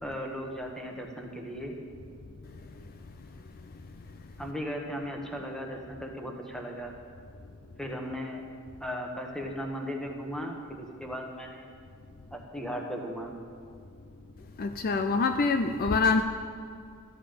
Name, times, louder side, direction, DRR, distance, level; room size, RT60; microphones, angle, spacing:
voice 1, 0.0-1.7 4.4-6.9 7.8-8.4 8.8-11.7 12.3-13.3, equal, 5° left, 1 dB, 1.2 m, -36 dB
voice 2, 14.6-16.2, left 4 dB, 40° left, 7 dB, 0.4 m, -25 dB
13.5 x 9.7 x 5.1 m, 2.3 s
head